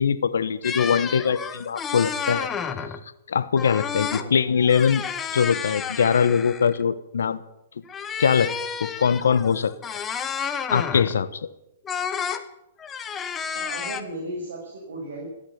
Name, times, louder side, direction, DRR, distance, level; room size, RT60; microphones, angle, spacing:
voice 1, 0.0-2.5 3.3-5.0 5.3-7.4 8.2-8.5 8.8-10.0 10.7-11.4, left 7 dB, 80° left, 13 dB, 1.1 m, -22 dB
sound 1, 0.6-3.0 3.6-4.3 4.6-6.8 7.9-11.2 11.8-12.4 12.8-14.0, left 7 dB, 20° left, 1.2 m, -31 dB
voice 2, 13.5-15.3, right 1 dB, 75° right, -2 dB, 5.9 m, -35 dB
14.5 x 10.0 x 9.5 m, 0.83 s
hypercardioid pair, 130°, 0 cm